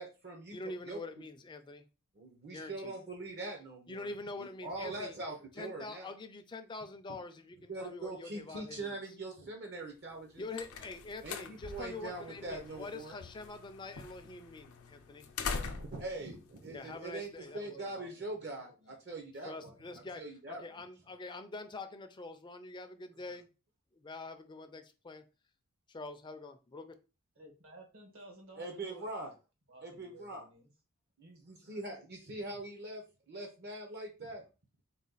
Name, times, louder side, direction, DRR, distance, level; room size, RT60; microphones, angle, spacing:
voice 1, 0.0-1.0 2.2-4.1 4.4-6.1 7.7-10.5 11.2-13.2 15.7-19.7 20.2-20.6 28.6-29.3 29.8-30.4 31.2-34.4, right 2 dB, 50° right, 0.8 m, -43 dB
voice 2, 0.5-1.9 2.5-2.9 3.9-5.2 5.6-9.0 10.4-15.3 16.7-17.9 19.4-20.2 20.5-23.5 23.9-25.2 25.9-26.9, left 3 dB, 20° left, 0.4 m, -45 dB
sound 1, 10.1-17.5, left 5 dB, 85° left, 0.6 m, -44 dB
voice 3, 12.0-12.8 17.5-19.0 27.3-29.4 29.7-30.7, right 1 dB, 70° right, 1.4 m, -55 dB
4.1 x 2.3 x 3.8 m
head